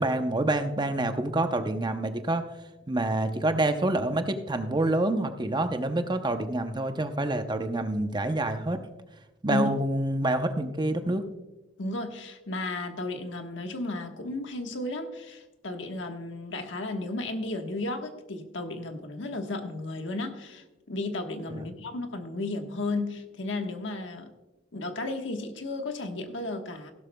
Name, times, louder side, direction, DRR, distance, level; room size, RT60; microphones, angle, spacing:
voice 1, 0.0-2.4 2.9-8.8 9.4-11.2 21.5-21.6, right 2 dB, 25° right, 8 dB, 0.7 m, -27 dB
voice 2, 11.8-24.3 24.7-26.9, left 2 dB, 75° left, 5 dB, 1.3 m, -33 dB
16.0 x 12.0 x 2.3 m, 1.1 s
head